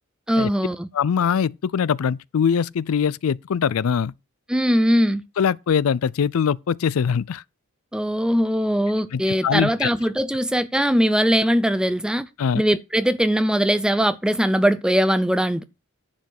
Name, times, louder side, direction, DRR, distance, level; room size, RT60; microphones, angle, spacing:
voice 1, 0.3-0.9 4.5-5.2 7.9-12.3 12.5-15.6, equal, 5° right, 0.5 m, -20 dB
voice 2, 0.9-4.1 5.4-7.4 9.1-9.9 12.4-12.6, left 7 dB, 90° left, 0.4 m, -22 dB
10.5 x 5.1 x 6.4 m
head